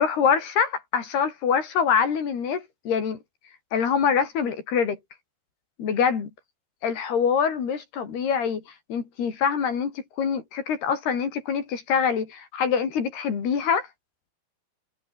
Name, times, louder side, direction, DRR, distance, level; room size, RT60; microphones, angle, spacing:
voice 1, 0.0-3.2 3.7-5.0 5.8-6.3 6.8-8.6 8.9-13.9, left 7 dB, 75° left, 6.0 m, -25 dB
omnidirectional pair, 4.6 m